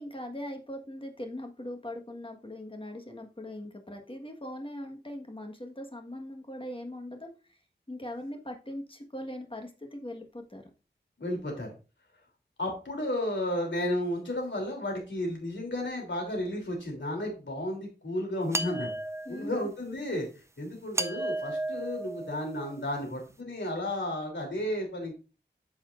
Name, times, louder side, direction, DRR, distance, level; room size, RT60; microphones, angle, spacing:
voice 1, 0.0-7.6 7.9-10.7 19.2-19.5, left 1 dB, 30° left, 4 dB, 1.5 m, -40 dB
voice 2, 11.2-11.7 12.6-18.9 19.3-20.3 20.6-25.1, left 1 dB, 80° left, 1 dB, 3.2 m, -33 dB
sound 1, 18.5-19.6 20.9-22.8, right 1 dB, 15° right, 0.5 m, -34 dB
8.9 x 7.1 x 2.5 m, 0.32 s
wide cardioid pair, 55°, 19 cm